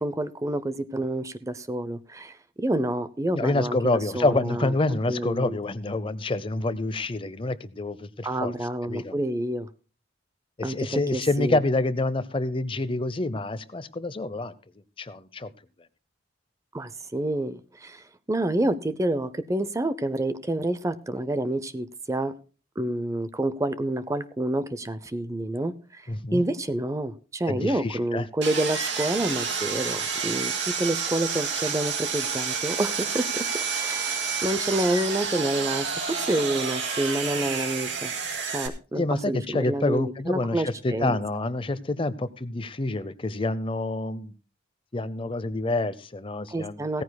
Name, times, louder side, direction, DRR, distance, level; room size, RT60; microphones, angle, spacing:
voice 1, 0.0-3.8 4.1-4.7 5.1-5.6 8.2-9.7 10.6-11.6 16.7-22.3 22.8-33.5 33.8-38.1 38.5-41.2 46.5-47.0, right 1 dB, 15° right, 13 dB, 0.5 m, -28 dB
voice 2, 3.3-8.5 8.8-9.1 10.6-14.5 15.0-15.5 26.1-26.4 27.5-28.3 39.0-44.3 44.9-47.0, left 2 dB, 30° left, 15 dB, 0.6 m, -27 dB
Sawing, 28.4-38.7, right 5 dB, 65° right, 2.2 m, -29 dB
17.0 x 14.5 x 2.2 m, 0.36 s
head